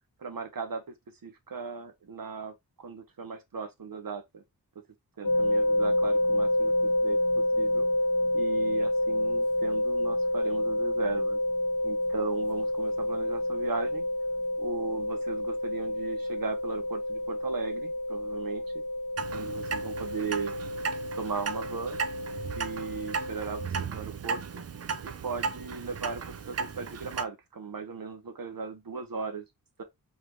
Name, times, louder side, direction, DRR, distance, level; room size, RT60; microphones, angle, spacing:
voice 1, 0.2-0.9 1.2-4.4 5.2-6.7 7.0-7.9 8.3-11.4 11.8-14.0 14.6-18.8 19.3-20.5 21.2-22.0 22.6-24.6 25.0-29.4 29.8-29.9, right 5 dB, 65° right, 1.0 m, -37 dB
sound 1, 5.2-23.7, left 1 dB, 55° left, 1.1 m, -29 dB
Clock, 19.2-27.2, right 5 dB, 40° right, 0.5 m, -36 dB
3.8 x 3.4 x 3.1 m
wide cardioid pair, 90°, 38 cm